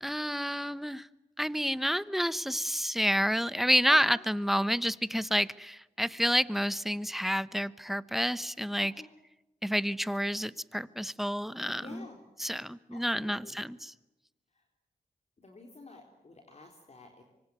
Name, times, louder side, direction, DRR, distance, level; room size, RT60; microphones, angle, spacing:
voice 1, 0.0-1.1 1.4-8.9 9.6-12.0 12.4-13.9, equal, ahead, 16 dB, 1.0 m, -29 dB
voice 2, 3.9-4.2 8.8-9.1 11.8-12.2 12.9-13.6 14.5-14.6 15.4-17.2, left 3 dB, 45° left, 3 dB, 3.8 m, -50 dB
25.5 x 23.5 x 9.4 m, 0.96 s
cardioid pair, 70°, 15 cm